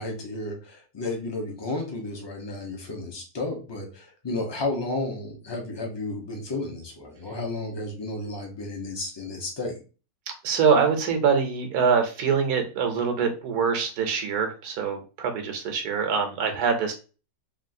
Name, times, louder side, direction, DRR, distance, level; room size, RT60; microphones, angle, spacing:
voice 1, 0.0-9.8, left 2 dB, 35° left, 1 dB, 0.4 m, -32 dB
voice 2, 10.4-16.9, right 6 dB, 85° right, 5 dB, 1.3 m, -24 dB
3.4 x 2.4 x 2.6 m, 0.34 s
omnidirectional pair, 1.6 m